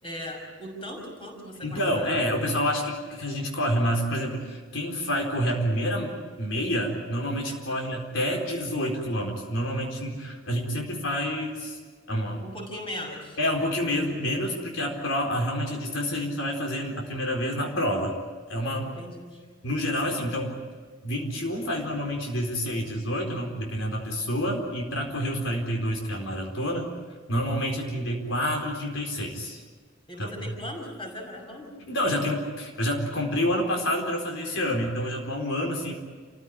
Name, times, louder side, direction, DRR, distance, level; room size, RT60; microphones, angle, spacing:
voice 1, 0.0-2.4 7.7-7.8 12.4-13.4 18.8-19.4 30.1-31.8, left 1 dB, 25° left, 1 dB, 5.8 m, -39 dB
voice 2, 1.6-11.8 12.1-12.4 13.4-18.1 18.5-19.0 19.6-20.6 21.0-27.0 27.3-29.6 30.2-30.6 31.8-35.9, equal, 75° left, 0 dB, 4.3 m, -28 dB
30.0 x 15.5 x 9.8 m, 1.5 s
head